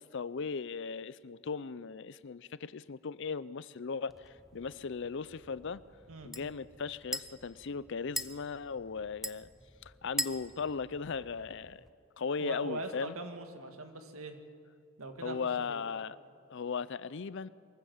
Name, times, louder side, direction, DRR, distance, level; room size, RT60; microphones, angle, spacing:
voice 1, 0.0-5.8 6.2-9.5 9.8-11.8 12.2-13.1 15.2-16.2 16.5-17.5, left 5 dB, 60° left, 18 dB, 0.5 m, -37 dB
sound 1, 4.1-11.9, equal, ahead, 0.6 m, -43 dB
voice 2, 12.4-14.4 15.0-15.4 15.7-15.8, right 2 dB, 80° right, 6 dB, 2.0 m, -41 dB
22.5 x 15.0 x 8.0 m, 2.3 s
head